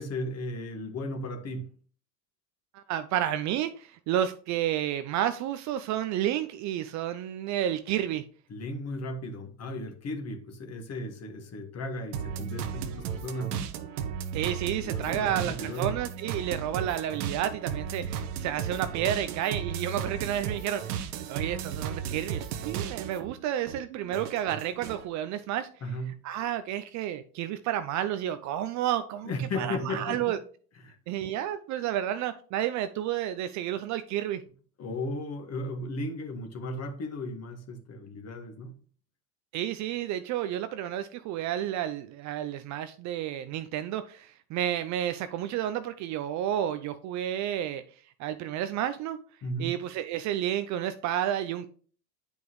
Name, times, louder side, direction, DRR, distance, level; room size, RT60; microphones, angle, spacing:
voice 1, 0.0-1.7 8.5-13.7 14.8-15.9 25.8-26.2 29.2-30.4 30.8-31.0 34.8-38.7 49.4-49.8, left 1 dB, 30° left, 1.6 m, -35 dB
voice 2, 2.7-8.2 14.3-20.9 21.3-25.7 26.2-29.3 29.6-30.4 31.1-34.4 39.5-47.8 48.2-49.2 49.6-51.7, right 11 dB, 35° right, 0.5 m, -31 dB
sound 1, 12.1-23.3 23.7-25.0, right 8 dB, 65° right, 1.1 m, -35 dB
9.3 x 5.3 x 3.1 m
hypercardioid pair, 90°, 50 cm